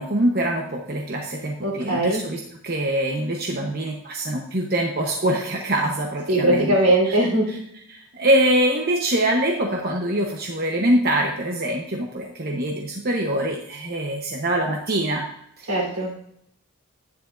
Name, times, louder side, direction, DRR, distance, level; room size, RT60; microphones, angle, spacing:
voice 1, 0.0-6.8 7.1-7.2 7.9-15.3 15.6-15.7, right 1 dB, 45° right, 1 dB, 0.9 m, -24 dB
voice 2, 1.6-2.2 6.3-7.6 15.7-16.1, right 1 dB, 80° right, -3 dB, 3.5 m, -20 dB
11.0 x 9.6 x 2.6 m, 0.73 s
head